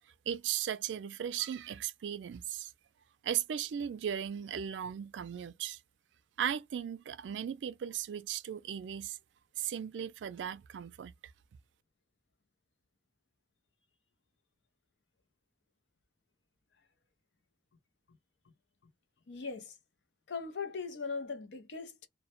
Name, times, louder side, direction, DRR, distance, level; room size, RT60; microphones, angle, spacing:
voice 1, 0.3-2.7 3.2-5.8 6.4-9.2 9.6-11.1, right 9 dB, 90° right, 0.3 m, -37 dB
voice 2, 19.3-19.8 20.3-22.1, left 4 dB, 80° left, 0.6 m, -39 dB
2.1 x 2.1 x 2.8 m
head